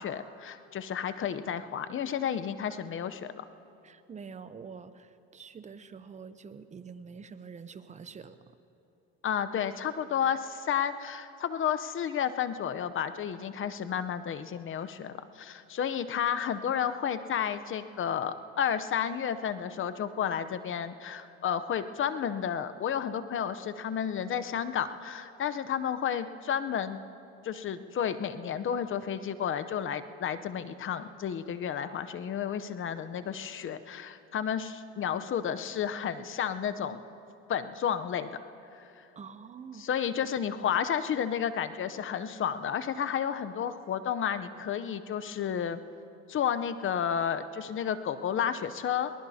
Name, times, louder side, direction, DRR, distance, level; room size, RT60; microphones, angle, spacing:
voice 1, 0.0-3.4 9.2-27.0 27.4-37.0 37.5-38.3 38.7-39.0 39.8-45.8 46.3-49.1, left 8 dB, 40° left, 11 dB, 0.8 m, -32 dB
voice 2, 3.8-8.4 39.2-39.9, right 6 dB, 20° right, 12 dB, 0.7 m, -46 dB
22.5 x 19.5 x 2.8 m, 2.8 s
supercardioid pair, 90°, 33 cm